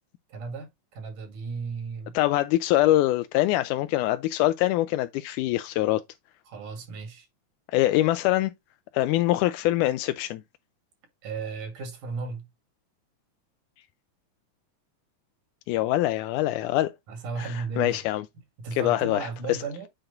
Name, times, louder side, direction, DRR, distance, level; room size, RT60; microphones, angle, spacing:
voice 1, 0.3-2.2 6.5-7.3 11.2-12.5 17.1-18.0 18.6-19.9, right 4 dB, 85° right, 3.7 m, -35 dB
voice 2, 2.1-6.0 7.7-8.5 8.9-10.4 15.7-16.9 17.4-18.3 18.7-19.6, left 15 dB, 85° left, 2.0 m, -24 dB
7.9 x 3.9 x 3.9 m
omnidirectional pair, 3.5 m